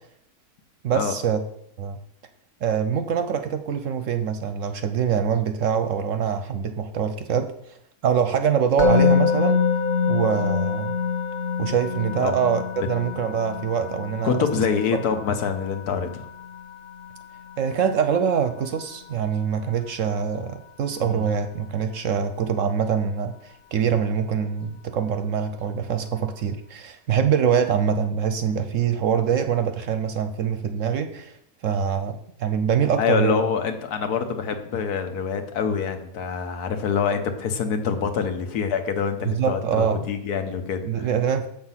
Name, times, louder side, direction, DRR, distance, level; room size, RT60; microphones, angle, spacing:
voice 1, 0.8-1.4 1.8-2.0 2.6-7.8 8.0-9.6 10.1-11.0 11.6-14.4 17.6-31.4 31.6-33.4 39.2-40.1 40.8-41.5, right 7 dB, 65° right, 9 dB, 0.9 m, -24 dB
Musical instrument, 8.8-19.9, left 6 dB, 40° left, 0.8 m, -26 dB
voice 2, 14.2-16.2 21.0-21.3 33.0-41.1, left 6 dB, 75° left, 7 dB, 1.4 m, -25 dB
7.1 x 6.5 x 5.7 m, 0.74 s
omnidirectional pair, 1.7 m